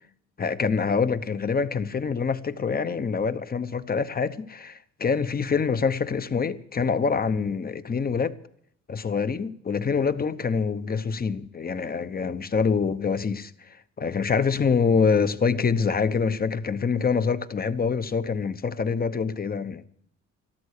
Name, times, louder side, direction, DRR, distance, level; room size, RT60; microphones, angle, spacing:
voice 1, 0.4-8.4 8.9-19.9, left 5 dB, 30° left, 0.9 m, -25 dB
13.0 x 13.0 x 6.6 m
cardioid pair, 90°, 30 cm